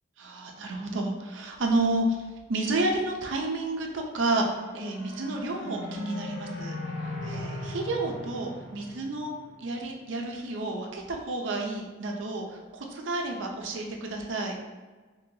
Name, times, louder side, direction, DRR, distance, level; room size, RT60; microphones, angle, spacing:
voice 1, 0.2-2.2 2.5-6.8 7.0-14.6, right 2 dB, 80° right, 1 dB, 0.6 m, -30 dB
sound 1, 4.3-9.7, left 2 dB, 35° left, 0.7 m, -38 dB
3.0 x 2.8 x 3.8 m, 1.3 s
head